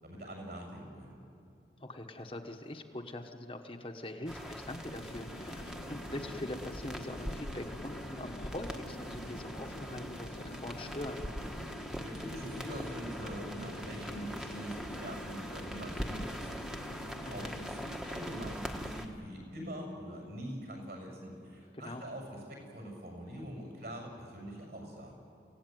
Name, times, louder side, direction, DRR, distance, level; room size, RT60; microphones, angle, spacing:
voice 1, 0.0-1.2 12.0-25.2, equal, 60° right, 1 dB, 7.0 m, -44 dB
voice 2, 1.8-11.3 17.2-17.6 21.7-22.1, left 1 dB, 30° left, 3 dB, 1.3 m, -43 dB
sound 1, 4.3-19.1, equal, 5° right, 1.3 m, -42 dB
Chatter / Fixed-wing aircraft airplane, 4.7-18.1, left 1 dB, 75° left, 1.7 m, -47 dB
29.0 x 16.5 x 9.3 m, 2.6 s
head